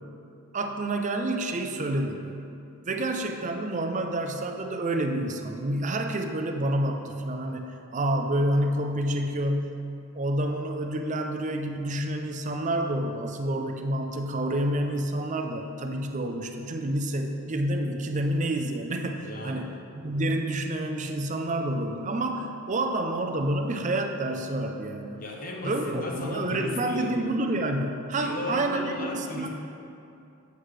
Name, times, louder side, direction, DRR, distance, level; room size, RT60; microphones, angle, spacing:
voice 1, 0.5-2.5 2.8-9.8 10.1-25.2 25.6-29.5, right 1 dB, 35° right, 4 dB, 0.5 m, -28 dB
voice 2, 19.2-19.8 25.2-27.1 28.2-29.5, left 2 dB, 40° left, -1 dB, 0.9 m, -35 dB
8.0 x 7.8 x 3.3 m, 2.6 s
head